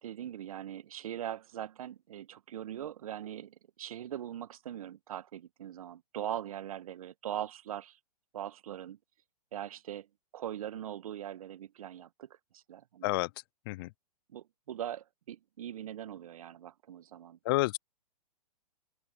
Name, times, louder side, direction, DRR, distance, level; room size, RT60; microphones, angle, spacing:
voice 1, 0.0-8.0 8.3-9.0 9.5-10.1 10.3-13.1 14.3-17.4, right 11 dB, 60° right, 1.4 m, -41 dB
voice 2, 17.5-17.8, left 21 dB, 35° left, 0.4 m, -29 dB
open air
figure-of-eight pair, 115°, 21 cm